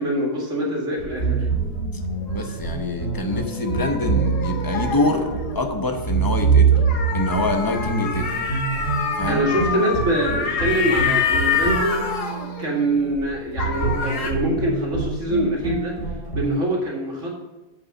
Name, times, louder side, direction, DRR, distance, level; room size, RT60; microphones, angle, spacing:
voice 1, 0.0-1.5 9.3-12.0 12.6-16.0 16.3-17.4, right 1 dB, 50° right, -3 dB, 2.6 m, -24 dB
sound 1, 1.0-16.5, right 5 dB, 55° left, 3.5 m, -25 dB
sound 2, 1.1-5.9 6.7-13.3 13.6-14.3, left 5 dB, 75° left, 1.7 m, -27 dB
voice 2, 2.3-6.7 7.1-8.3 9.1-9.4, left 2 dB, 20° left, 4 dB, 0.6 m, -25 dB
8.1 x 5.5 x 6.6 m, 1.1 s
omnidirectional pair, 1.7 m